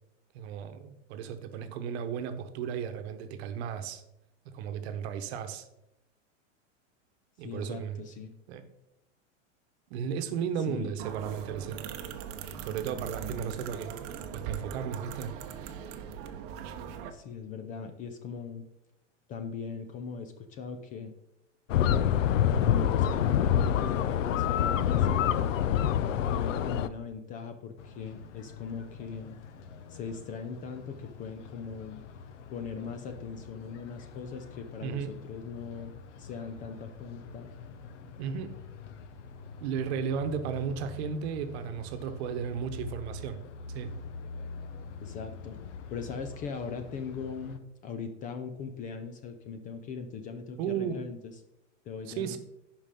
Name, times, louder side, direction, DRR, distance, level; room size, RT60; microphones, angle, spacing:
voice 1, 0.3-4.0 4.4-5.7 7.4-8.0 8.5-8.6 9.9-11.8 12.6-15.3 34.8-35.1 38.2-38.6 39.6-43.4 43.7-43.9 50.6-51.0 52.1-52.4, right 7 dB, 60° right, 8 dB, 1.1 m, -34 dB
voice 2, 7.4-8.3 10.7-10.9 17.1-18.6 19.3-21.1 22.4-25.5 26.3-29.4 29.9-32.0 32.5-35.9 36.2-37.5 45.0-45.6 45.9-51.3 51.9-52.4, left 5 dB, 20° left, 8 dB, 0.4 m, -40 dB
sound 1, 11.0-17.1, right 8 dB, 40° right, 0.8 m, -40 dB
sound 2, 21.7-26.9, left 9 dB, 85° left, 0.6 m, -25 dB
sound 3, 27.8-47.6, left 4 dB, 70° left, 1.0 m, -46 dB
11.0 x 4.9 x 3.7 m, 0.88 s
supercardioid pair, 140°, 37 cm